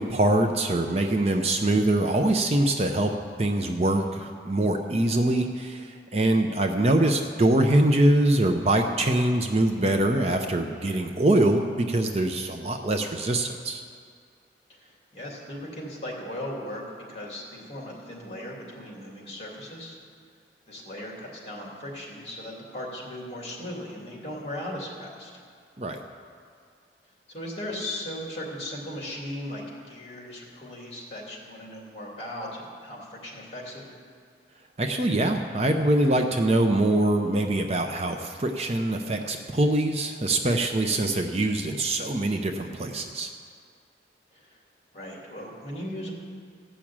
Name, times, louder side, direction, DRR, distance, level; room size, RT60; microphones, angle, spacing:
voice 1, 0.0-3.1 3.4-13.8 25.8-26.0 34.8-43.3, right 1 dB, 35° right, 4 dB, 0.6 m, -23 dB
voice 2, 14.7-16.8 17.1-20.0 20.7-25.3 27.3-33.9 44.3-44.6 44.9-46.1, left 1 dB, 35° left, -3 dB, 2.8 m, -37 dB
14.5 x 6.1 x 8.7 m, 2.2 s
head